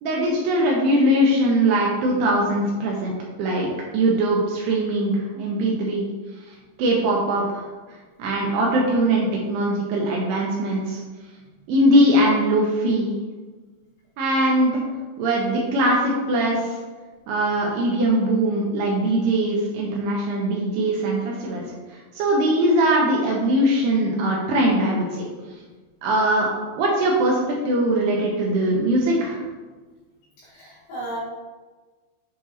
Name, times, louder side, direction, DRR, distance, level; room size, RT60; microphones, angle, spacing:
voice 1, 0.0-3.1 3.4-3.7 3.9-6.1 6.8-7.6 8.2-11.0 11.7-13.2 14.2-14.8 15.2-16.8 17.3-21.6 21.9-25.2 26.0-26.5 26.8-29.4, right 1 dB, 90° right, -2 dB, 2.3 m, -21 dB
voice 2, 30.4-31.2, right 1 dB, 70° left, -12 dB, 4.0 m, -35 dB
8.0 x 4.7 x 2.8 m, 1.3 s
omnidirectional pair, 5.6 m